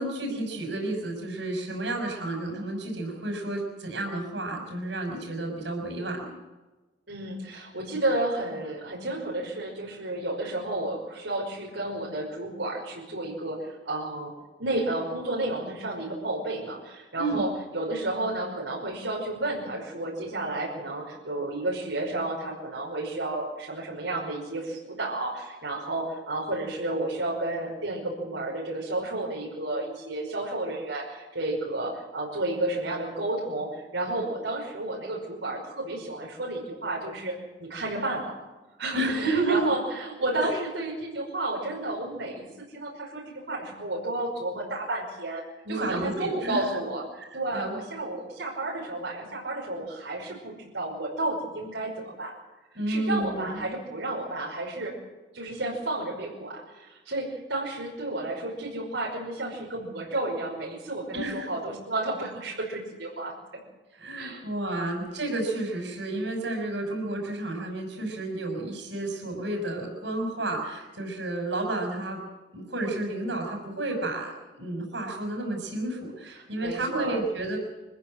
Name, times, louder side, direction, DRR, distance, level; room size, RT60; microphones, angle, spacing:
voice 1, 0.0-6.4 17.1-17.5 38.9-39.7 40.4-40.5 45.6-46.6 47.2-47.8 52.7-53.7 61.1-61.5 63.9-72.2 72.5-77.6, right 2 dB, 70° right, 3 dB, 6.2 m, -31 dB
voice 2, 7.1-14.3 14.6-37.3 37.6-38.3 38.8-45.4 45.7-47.0 47.3-52.3 52.9-54.9 55.3-63.3 64.2-64.4 76.6-77.2, right 2 dB, 85° right, -2 dB, 5.6 m, -32 dB
24.5 x 15.5 x 7.8 m, 1.2 s
head